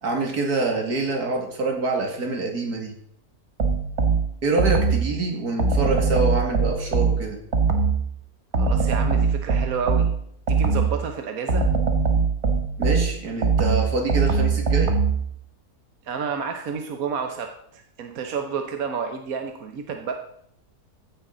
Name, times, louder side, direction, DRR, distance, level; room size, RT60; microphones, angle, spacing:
voice 1, 0.0-2.9 4.4-7.4 12.8-15.0, right 3 dB, 85° right, 2 dB, 2.7 m, -26 dB
sound 1, 3.6-5.1 5.6-8.1 8.5-11.0 11.5-15.3, right 4 dB, 50° right, 1.6 m, -21 dB
voice 2, 8.5-10.1 10.5-11.7 16.0-20.1, right 6 dB, 70° right, 5 dB, 1.4 m, -30 dB
15.0 x 10.5 x 3.9 m, 0.69 s
omnidirectional pair, 1.6 m